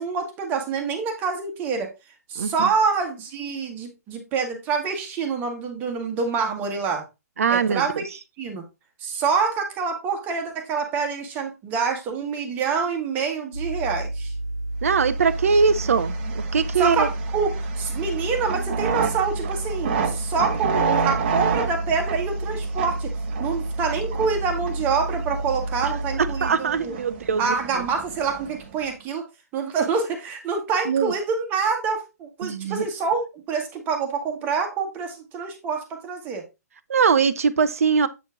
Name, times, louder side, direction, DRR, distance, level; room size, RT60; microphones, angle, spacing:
voice 1, 0.0-1.9 2.3-7.0 7.5-8.6 9.0-14.3 16.8-23.1 23.4-26.9 27.4-29.2 29.5-33.2 33.5-36.4, right 5 dB, 20° right, 1.6 m, -26 dB
voice 2, 2.4-2.7 7.4-8.0 14.8-17.1 26.2-27.9 30.9-31.1 32.4-32.9 36.9-38.1, right 5 dB, 55° right, 0.6 m, -22 dB
sound 1, 13.5-26.5, right 1 dB, 80° left, 3.2 m, -30 dB
sound 2, 15.0-28.9, right 6 dB, 35° right, 1.0 m, -31 dB
8.2 x 4.5 x 3.6 m
figure-of-eight pair, 130°, 9 cm